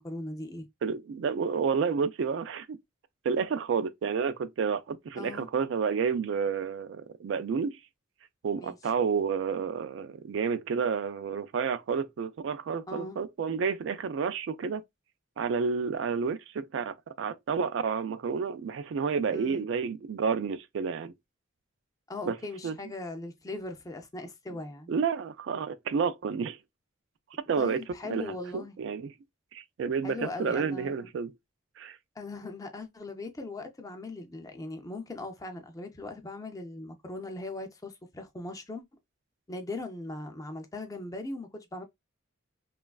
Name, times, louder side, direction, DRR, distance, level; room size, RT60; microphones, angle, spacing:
voice 1, 0.0-0.7 5.2-5.5 8.5-8.8 12.9-13.2 19.3-19.6 22.1-24.9 27.6-28.7 30.0-31.1 32.2-38.8 39.5-41.8, left 2 dB, 15° left, 0.4 m, -39 dB
voice 2, 0.8-2.8 3.2-7.8 8.4-14.8 15.4-21.1 22.3-22.4 22.6-22.8 24.9-26.6 27.5-29.1 29.5-31.3 31.8-32.0, right 6 dB, 65° right, 0.3 m, -30 dB
3.0 x 2.3 x 2.3 m
head